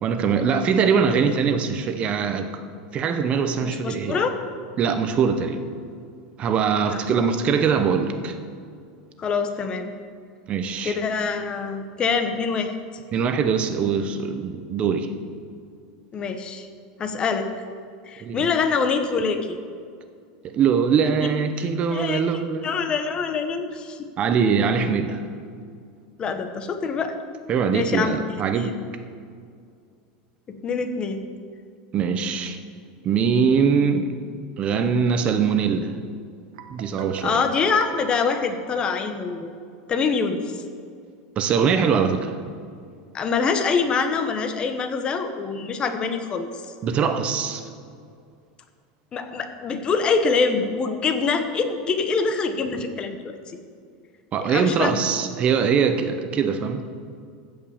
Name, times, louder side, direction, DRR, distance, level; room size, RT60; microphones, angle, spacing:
voice 1, 0.0-2.5 2.9-4.2 4.8-5.7 6.4-8.4 10.5-11.0 13.1-15.1 18.2-18.4 20.4-22.6 24.2-25.2 27.5-28.8 31.9-32.6 33.0-34.1 34.6-35.9 36.7-37.4 41.4-42.4 46.8-47.6 54.3-56.9, right 6 dB, 30° right, 8 dB, 0.8 m, -22 dB
voice 2, 3.6-4.3 6.9-7.0 9.2-9.9 10.8-12.7 16.1-16.7 17.0-17.5 18.1-19.6 21.9-22.2 22.6-24.1 26.2-27.2 27.7-28.2 28.6-28.7 30.5-31.3 37.2-39.5 39.9-40.4 43.1-46.5 49.1-53.4 54.4-55.0, left 5 dB, 25° left, 7 dB, 0.9 m, -25 dB
Guitar, 36.6-39.4, right 10 dB, 70° right, 0.9 m, -39 dB
15.0 x 5.3 x 7.1 m, 2.2 s
supercardioid pair, 155°, 4 cm